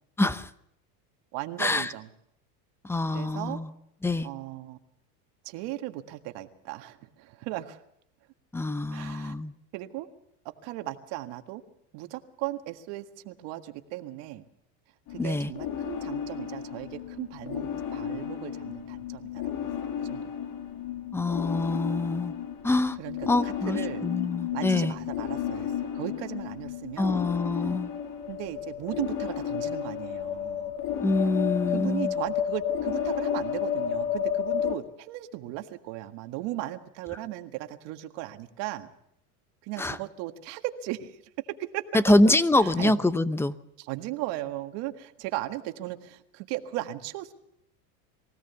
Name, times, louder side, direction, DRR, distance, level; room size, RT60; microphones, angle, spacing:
voice 1, 0.2-0.5 1.6-1.9 2.8-3.7 4.0-4.3 8.5-9.5 15.2-15.5 21.1-22.3 22.6-23.0 23.3-25.0 27.0-27.9 31.0-32.1 39.8-40.0 41.9-43.5, left 2 dB, 5° left, 14 dB, 0.8 m, -25 dB
voice 2, 1.3-2.1 3.1-3.6 4.2-4.8 5.4-7.8 8.9-9.3 9.7-10.1 10.5-11.6 11.9-14.5 15.1-19.7 20.0-20.3 23.0-23.2 23.4-24.1 24.5-27.3 28.3-30.7 31.7-38.9 39.6-41.8 42.6-42.9 43.8-47.3, right 16 dB, 60° right, 7 dB, 1.8 m, -37 dB
sound 1, 15.1-34.8, left 9 dB, 50° left, 2.7 m, -32 dB
23.5 x 17.0 x 7.1 m, 0.76 s
supercardioid pair, 120°, 46 cm